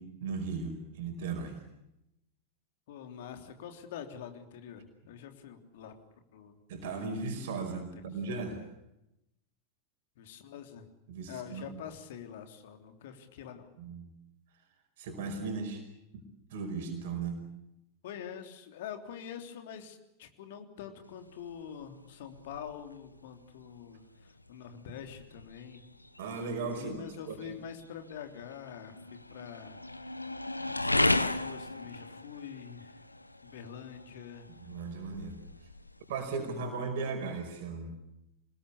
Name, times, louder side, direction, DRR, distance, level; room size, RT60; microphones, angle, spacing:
voice 1, 0.0-1.6 6.7-8.6 11.1-11.8 13.8-14.1 15.0-15.8 16.5-17.4 26.2-27.4 34.5-35.4 36.1-38.0, right 4 dB, 55° right, 4 dB, 5.2 m, -37 dB
voice 2, 2.9-5.9 6.3-6.6 7.7-8.0 10.2-10.9 11.3-13.7 18.0-25.8 26.7-29.8 30.8-33.0 33.4-34.5, left 8 dB, 55° left, 6 dB, 3.4 m, -45 dB
sound 1, 21.0-36.6, left 2 dB, 85° left, 1.1 m, -37 dB
26.5 x 20.5 x 8.5 m, 0.86 s
figure-of-eight pair, 90°, 0 cm